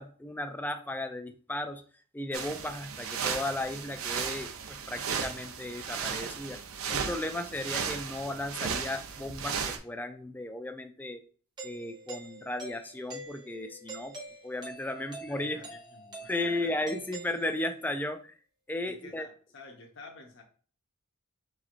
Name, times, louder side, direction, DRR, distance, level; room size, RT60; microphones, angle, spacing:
voice 1, 0.0-1.8 2.1-6.6 6.9-11.2 11.6-14.1 14.4-15.6 16.3-18.3 18.7-19.3, left 1 dB, 10° left, 8 dB, 0.3 m, -35 dB
sound 1, 2.3-9.8, right 6 dB, 90° right, 0.5 m, -35 dB
Doorbell, 11.6-17.9, right 2 dB, 20° right, 0.7 m, -46 dB
voice 2, 14.9-16.7 18.8-20.4, left 3 dB, 60° left, 2 dB, 0.7 m, -50 dB
4.9 x 3.1 x 2.4 m, 0.41 s
head